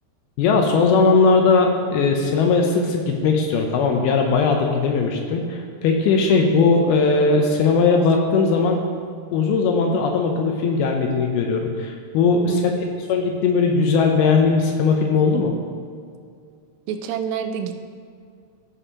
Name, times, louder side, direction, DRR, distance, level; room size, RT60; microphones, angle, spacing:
voice 1, 0.4-8.8 9.3-15.5, left 4 dB, 80° left, 2 dB, 2.4 m, -19 dB
voice 2, 6.3-6.7 12.5-12.9 16.9-17.8, right 8 dB, 90° right, 6 dB, 2.7 m, -28 dB
15.5 x 5.3 x 2.8 m, 2.2 s
omnidirectional pair, 4.8 m